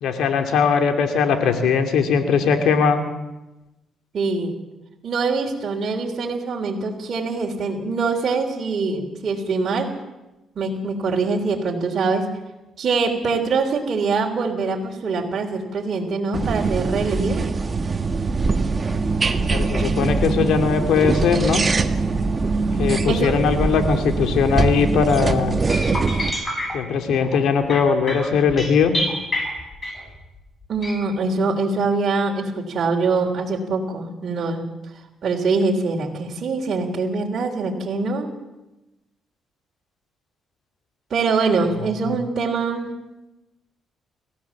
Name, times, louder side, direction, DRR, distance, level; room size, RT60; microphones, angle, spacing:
voice 1, 0.0-3.0 19.5-21.6 22.8-25.6 26.7-28.9, left 6 dB, 80° left, 5 dB, 2.6 m, -20 dB
voice 2, 4.1-4.6 5.0-9.9 10.6-12.3 12.8-17.5 23.1-23.3 24.3-24.4 30.7-34.7 35.2-38.3 41.1-42.9, right 4 dB, 50° right, -1 dB, 3.5 m, -23 dB
sound 1, 16.3-26.3, right 4 dB, 30° right, 1.6 m, -22 dB
sound 2, 25.7-30.2 30.8-30.9, left 1 dB, 25° left, 7.1 m, -28 dB
29.5 x 15.5 x 7.2 m, 1.0 s
cardioid pair, 90°, 0 cm